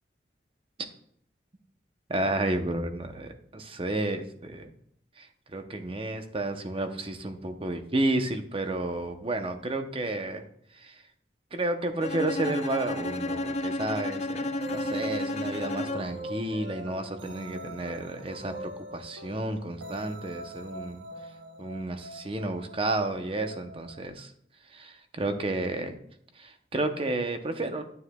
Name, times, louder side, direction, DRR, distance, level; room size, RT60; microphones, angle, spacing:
voice 1, 2.1-4.7 5.2-10.4 10.7-11.0 11.5-21.1 21.6-24.3 24.7-25.9 26.3-27.8, right 2 dB, 30° right, 6 dB, 0.8 m, -31 dB
Bowed string instrument, 12.0-16.3, left 2 dB, 35° left, 0.4 m, -32 dB
sound 1, 12.4-24.1, right 2 dB, 85° right, 0.8 m, -43 dB
9.6 x 9.5 x 2.3 m, 0.69 s
head